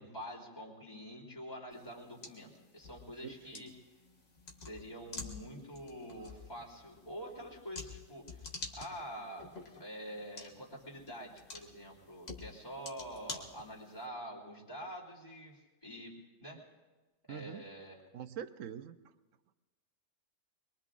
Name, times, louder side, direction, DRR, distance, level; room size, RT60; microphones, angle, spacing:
voice 1, 0.0-3.7 4.6-16.6 17.3-18.0, equal, 15° left, -4 dB, 3.0 m, -46 dB
sound 1, 1.7-14.1, left 3 dB, 65° left, 2.0 m, -49 dB
voice 2, 3.2-3.6 17.3-17.6 18.1-19.0, right 9 dB, 75° right, 11 dB, 1.1 m, -44 dB
25.5 x 22.0 x 2.5 m, 1.2 s
omnidirectional pair, 1.3 m